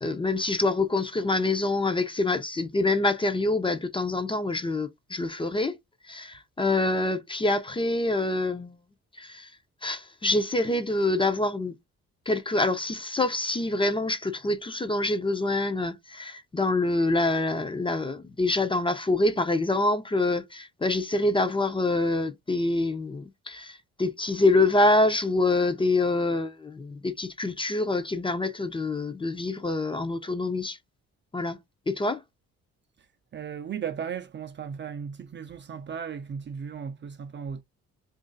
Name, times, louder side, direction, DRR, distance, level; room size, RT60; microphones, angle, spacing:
voice 1, 0.0-5.8 6.0-8.8 9.1-9.5 9.8-11.7 12.3-30.8 31.3-31.6 31.9-32.2, left 2 dB, 15° left, 0.6 m, -26 dB
voice 2, 33.3-37.6, right 7 dB, 40° right, 0.5 m, -36 dB
3.0 x 2.5 x 3.9 m
cardioid pair, 90°, 30 cm